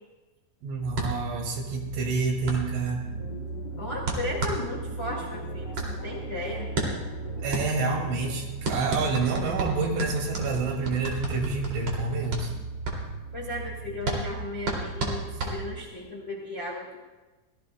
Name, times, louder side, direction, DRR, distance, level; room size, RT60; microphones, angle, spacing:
voice 1, 0.6-3.0 7.4-12.5, right 4 dB, 85° right, 1 dB, 4.6 m, -28 dB
sound 1, 0.7-15.8, right 4 dB, 20° right, 3.9 m, -38 dB
sound 2, 0.9-16.0, right 2 dB, 40° right, 3.1 m, -33 dB
sound 3, 3.1-8.3, left 5 dB, 60° left, 3.0 m, -44 dB
voice 2, 3.8-6.7 13.3-17.0, left 2 dB, 45° left, -1 dB, 0.7 m, -35 dB
25.0 x 17.0 x 2.2 m, 1.2 s
omnidirectional pair, 5.3 m